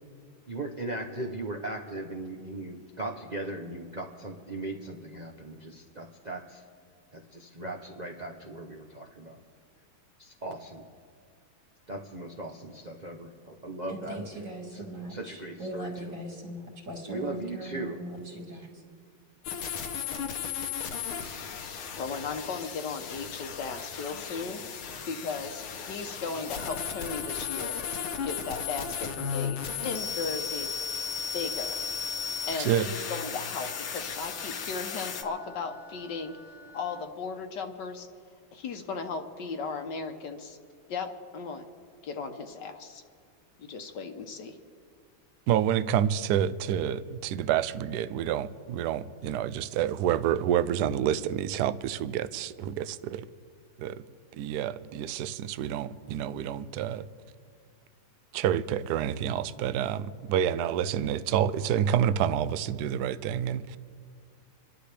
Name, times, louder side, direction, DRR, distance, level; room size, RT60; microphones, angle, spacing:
voice 1, 0.5-6.6 7.3-9.4 10.2-10.8 11.9-14.2 14.7-16.1 17.1-18.0, right 2 dB, 55° right, 0 dB, 0.4 m, -38 dB
voice 2, 13.9-18.7, right 1 dB, 40° right, 0 dB, 2.6 m, -39 dB
sound 1, 19.4-35.2, left 7 dB, 90° left, 1.8 m, -35 dB
voice 3, 22.0-24.6 25.1-27.8 28.2-30.7 31.3-31.8 32.5-36.4 36.7-38.1 38.5-40.6 40.9-41.1 41.3-41.7 42.0-43.0 43.6-44.6, left 5 dB, 65° left, 6 dB, 1.4 m, -36 dB
Wind instrument woodwind instrument, 26.5-37.1, left 1 dB, 20° left, 1.1 m, -50 dB
voice 4, 45.5-53.3 53.8-54.0 54.3-57.1 58.3-63.8, right 10 dB, 75° right, 13 dB, 0.9 m, -28 dB
27.5 x 11.5 x 3.4 m, 2.2 s
omnidirectional pair, 2.3 m